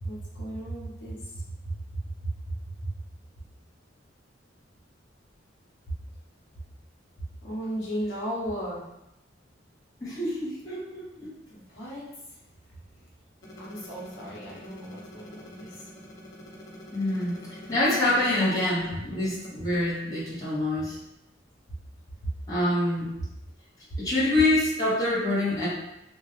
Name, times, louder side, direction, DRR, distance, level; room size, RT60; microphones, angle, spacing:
voice 1, 0.0-1.4 2.5-2.6 7.4-8.9 11.5-12.1 13.5-15.9 18.4-18.9 22.2-22.3 23.9-24.0, right 1 dB, 75° left, -6 dB, 0.9 m, -35 dB
voice 2, 10.0-11.3 16.9-17.3 17.7-21.0 22.5-23.1 24.0-25.7, left 1 dB, 20° left, -10 dB, 1.1 m, -26 dB
2.8 x 2.3 x 3.1 m, 0.87 s
head